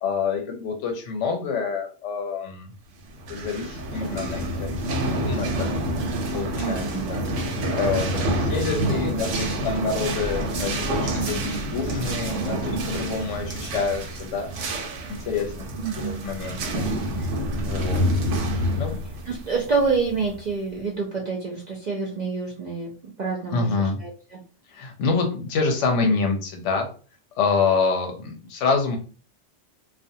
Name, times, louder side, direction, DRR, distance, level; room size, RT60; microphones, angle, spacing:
voice 1, 0.0-2.7 3.3-5.7 6.3-7.2 7.7-14.5 15.1-15.7 16.0-16.9 17.2-17.3 17.6-18.2 18.7-19.0 23.5-24.0 24.7-26.9 27.4-29.0, left 4 dB, 85° left, 2 dB, 0.9 m, -27 dB
sound 1, 3.1-20.5, right 1 dB, 90° right, 0.9 m, -28 dB
voice 2, 6.5-7.0 15.8-16.2 19.3-22.9 23.2-23.7 24.0-24.1, right 4 dB, 55° right, -2 dB, 0.5 m, -27 dB
2.4 x 2.1 x 2.7 m, 0.39 s
omnidirectional pair, 1.2 m